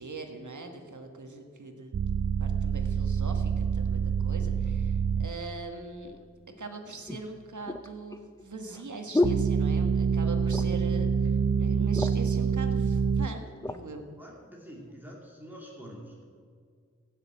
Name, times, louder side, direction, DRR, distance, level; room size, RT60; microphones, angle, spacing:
voice 1, 0.0-2.0 2.4-6.2 6.6-14.1, right 3 dB, 75° right, 5 dB, 1.5 m, -42 dB
sound 1, 1.9-5.3 9.2-13.3, right 6 dB, 40° right, 0.4 m, -26 dB
sound 2, 6.1-6.2 7.1-10.2 10.5-10.9 11.3-11.4 11.7-12.4 13.1-13.8 14.5-14.7, left 2 dB, 10° left, 0.7 m, -32 dB
voice 2, 14.2-16.2, equal, 5° right, -3 dB, 2.6 m, -46 dB
15.5 x 6.6 x 7.6 m, 2.1 s
wide cardioid pair, 40°, 30 cm